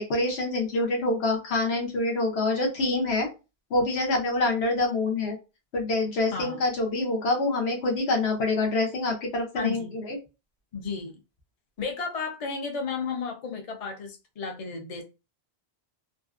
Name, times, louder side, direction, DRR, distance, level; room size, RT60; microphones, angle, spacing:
voice 1, 0.0-3.3 3.7-5.4 5.7-10.2, left 2 dB, 80° left, 1.0 m, -26 dB
voice 2, 6.3-6.6 9.6-10.0 10.7-11.1 11.8-15.0, left 5 dB, 45° left, 0.5 m, -33 dB
2.5 x 2.2 x 2.4 m
omnidirectional pair, 1.1 m